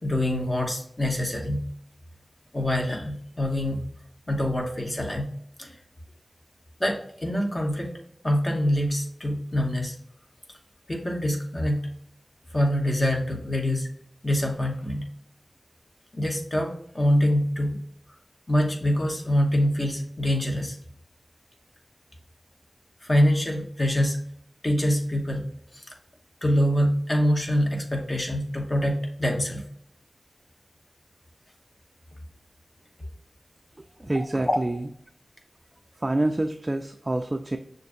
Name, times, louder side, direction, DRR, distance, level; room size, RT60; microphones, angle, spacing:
voice 1, 0.0-1.6 2.5-3.8 4.3-5.3 5.6-5.8 6.8-7.9 8.2-10.0 10.9-11.8 12.5-13.9 14.2-15.0 16.1-17.8 18.5-20.8 23.0-24.2 24.6-25.4 25.7-25.9 26.4-29.6 34.5-34.6, equal, 35° left, 1 dB, 1.0 m, -25 dB
voice 2, 34.0-34.9 36.0-37.6, right 1 dB, 30° right, 5 dB, 0.3 m, -27 dB
6.2 x 2.5 x 2.5 m, 0.66 s
wide cardioid pair, 55°, 0 cm